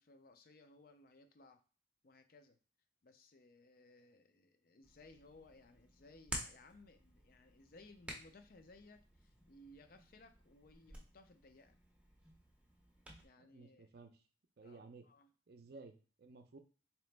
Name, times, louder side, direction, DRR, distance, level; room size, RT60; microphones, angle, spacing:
voice 1, 0.0-1.6 2.0-2.6 3.0-11.8 13.1-13.9 14.6-15.3, left 2 dB, 50° left, 7 dB, 0.5 m, -62 dB
Hands, 4.8-13.2, right 1 dB, 5° right, 0.6 m, -52 dB
voice 2, 13.4-14.1 14.6-15.1 15.5-16.6, right 3 dB, 55° right, 8 dB, 0.5 m, -56 dB
3.8 x 2.9 x 3.3 m, 0.38 s
head